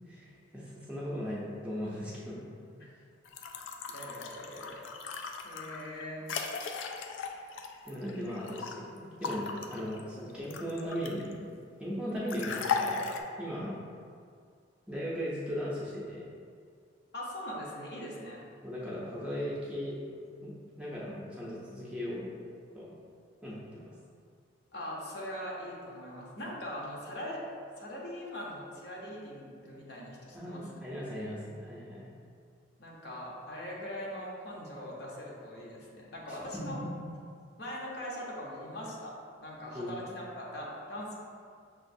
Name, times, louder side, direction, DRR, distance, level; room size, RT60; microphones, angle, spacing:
voice 1, 0.1-2.5 7.8-11.4 11.8-13.1 13.4-13.8 14.9-16.3 18.6-20.0 20.4-22.3 22.7-23.0 23.4-23.9 30.3-32.1 36.3-36.9 39.7-40.0, equal, 5° right, -7 dB, 0.5 m, -38 dB
sound 1, 3.2-8.7 9.2-11.3 12.3-13.2, left 5 dB, 75° left, 0.3 m, -37 dB
voice 2, 3.9-4.8 5.4-6.3 17.1-18.4 24.7-27.4 27.8-30.6 32.8-36.8 37.6-39.1 39.4-41.1, left 1 dB, 60° left, -4 dB, 0.7 m, -41 dB
5.8 x 2.4 x 2.6 m, 2.2 s
head